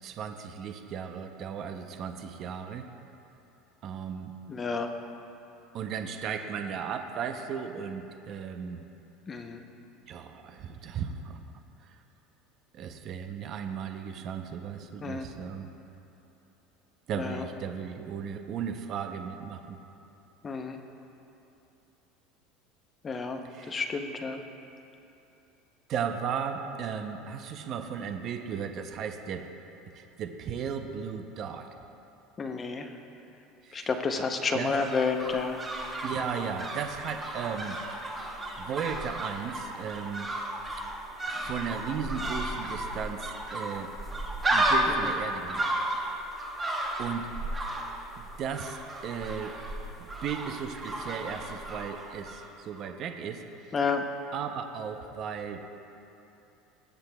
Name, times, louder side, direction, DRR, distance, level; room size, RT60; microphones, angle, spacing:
voice 1, 0.0-2.9 3.8-4.3 5.7-8.8 10.1-11.4 11.8-12.0 12.7-15.7 17.1-19.8 23.4-23.8 25.9-29.5 29.9-31.7 33.6-33.9 34.5-34.7 36.0-38.0 38.6-40.3 41.3-43.9 44.5-45.8 47.0-47.6 48.2-49.6 50.0-53.5 54.3-55.7, right 7 dB, 40° right, 6 dB, 0.5 m, -36 dB
voice 2, 4.5-4.9 9.3-9.6 15.0-15.3 17.1-17.4 20.4-20.8 23.0-24.4 32.4-32.9 33.7-35.6 45.0-45.1 53.7-54.1, left 4 dB, 20° left, 5 dB, 0.6 m, -30 dB
sound 1, 34.3-52.5 52.7-52.8, right 1 dB, 15° right, 1.0 m, -33 dB
20.0 x 7.8 x 2.2 m, 2.9 s
cardioid pair, 155°, 0 cm